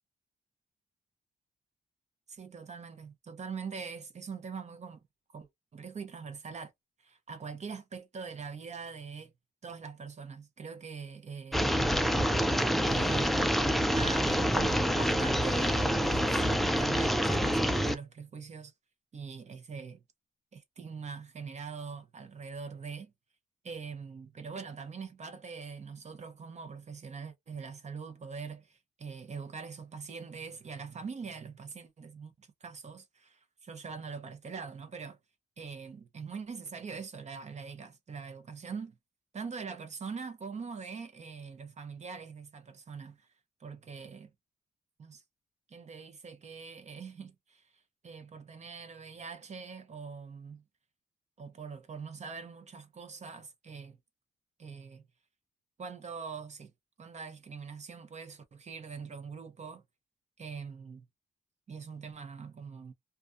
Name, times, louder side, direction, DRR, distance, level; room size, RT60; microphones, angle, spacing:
voice 1, 2.3-5.0 5.3-6.7 7.0-9.3 9.6-11.7 12.9-13.6 13.9-18.7 19.1-20.0 20.5-23.1 23.6-35.2 35.6-38.9 39.3-43.3 43.6-44.3 45.0-45.2 45.7-50.6 51.4-54.0 54.6-55.0 55.8-56.7 57.0-59.8 60.4-61.1 61.7-62.9, right 5 dB, 40° right, 0.7 m, -43 dB
sound 1, 11.5-17.9, equal, ahead, 0.4 m, -27 dB
2.4 x 2.2 x 2.5 m
cardioid pair, 75°, 17 cm